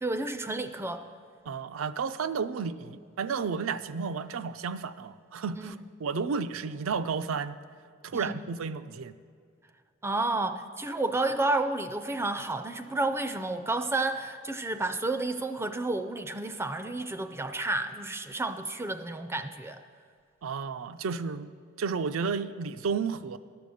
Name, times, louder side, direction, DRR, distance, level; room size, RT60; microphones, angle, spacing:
voice 1, 0.0-1.0 5.6-5.7 8.1-8.5 10.0-19.8, right 2 dB, 10° right, 9 dB, 0.3 m, -31 dB
voice 2, 1.5-5.7 6.0-7.6 8.0-9.2 20.4-21.5 21.8-23.4, right 5 dB, 85° right, 13 dB, 0.4 m, -32 dB
12.0 x 6.9 x 6.4 m, 2.1 s
head